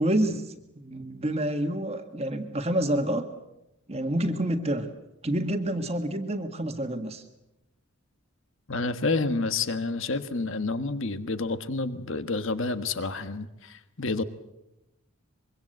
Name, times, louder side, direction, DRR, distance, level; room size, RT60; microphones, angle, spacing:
voice 1, 0.0-3.2 3.9-4.9 5.2-7.2, right 1 dB, 30° right, 5 dB, 1.7 m, -28 dB
voice 2, 8.7-14.2, left 3 dB, 60° left, 11 dB, 1.4 m, -29 dB
24.5 x 23.5 x 7.9 m, 0.90 s
head